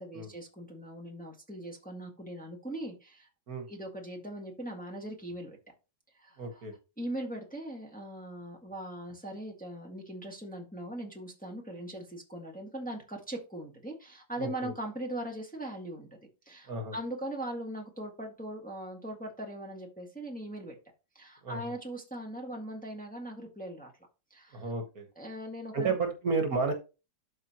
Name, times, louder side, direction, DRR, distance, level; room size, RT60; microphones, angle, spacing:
voice 1, 0.0-3.3 3.7-5.6 6.1-6.6 7.0-16.1 16.4-20.8 21.1-23.9 24.3-24.6 25.1-26.0, right 1 dB, 5° left, 0 dB, 1.5 m, -40 dB
voice 2, 6.4-6.7 14.4-14.7 16.7-16.9 21.4-21.7 24.5-25.1 25.7-26.7, right 4 dB, 55° right, 5 dB, 1.6 m, -32 dB
12.0 x 4.5 x 2.9 m, 0.30 s
omnidirectional pair, 1.9 m